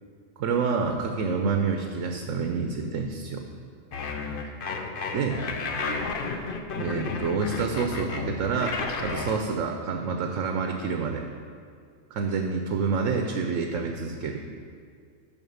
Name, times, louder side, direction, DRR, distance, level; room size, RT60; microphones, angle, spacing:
voice 1, 0.4-3.4 5.1-5.4 6.8-11.2 12.1-14.4, right 5 dB, 70° right, 4 dB, 1.0 m, -28 dB
sound 1, 3.9-9.4, left 4 dB, 50° left, 0.7 m, -32 dB
7.2 x 5.8 x 7.0 m, 2.2 s
omnidirectional pair, 1.4 m